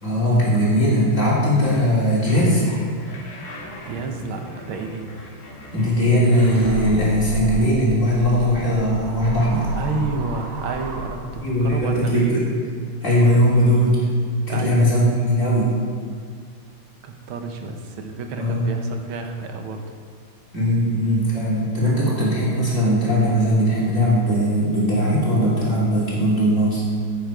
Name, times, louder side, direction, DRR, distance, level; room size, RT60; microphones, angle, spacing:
voice 1, 0.0-2.7 5.7-9.7 11.4-12.4 13.0-14.1 14.5-15.7 18.4-18.7 20.5-26.8, equal, 35° left, -7 dB, 3.3 m, -19 dB
sound 1, 1.6-7.0, left 1 dB, 65° left, 2.8 m, -40 dB
voice 2, 3.8-5.1 9.8-12.4 14.5-14.9 17.0-19.8, right 4 dB, 75° right, 4 dB, 1.8 m, -30 dB
sound 2, 6.3-11.7, right 2 dB, 50° right, 1.3 m, -32 dB
10.5 x 8.9 x 4.8 m, 2.1 s
omnidirectional pair, 2.4 m